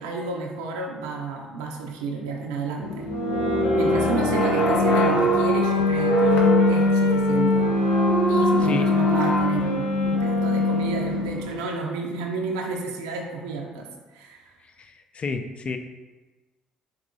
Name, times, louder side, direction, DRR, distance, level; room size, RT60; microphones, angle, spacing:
voice 1, 0.0-3.1 3.7-7.7 8.2-14.5, right 3 dB, 85° right, 0 dB, 0.6 m, -31 dB
sound 1, 2.8-11.6, left 2 dB, 65° left, 1.0 m, -22 dB
Wind instrument woodwind instrument, 3.1-11.4, right 2 dB, 80° left, 0.6 m, -28 dB
voice 2, 8.6-8.9 14.6-15.8, left 4 dB, 40° left, 7 dB, 0.5 m, -32 dB
7.0 x 2.7 x 2.7 m, 1.2 s
hypercardioid pair, 55°, 3 cm